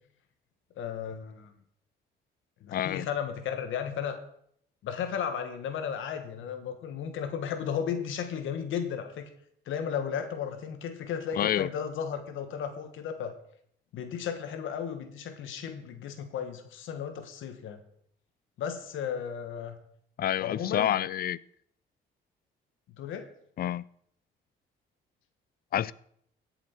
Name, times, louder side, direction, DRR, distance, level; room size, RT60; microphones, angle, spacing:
voice 1, 0.8-1.5 2.6-4.2 4.8-9.3 9.7-13.3 13.9-17.8 18.6-19.8 20.4-20.9 23.0-23.3, left 8 dB, 80° left, 8 dB, 1.4 m, -34 dB
voice 2, 2.7-3.1 11.4-11.7 20.2-21.4 23.6-23.8 25.7-25.9, left 11 dB, 50° left, 21 dB, 0.4 m, -28 dB
16.0 x 7.4 x 4.4 m, 0.67 s
cardioid pair, 90°, 20 cm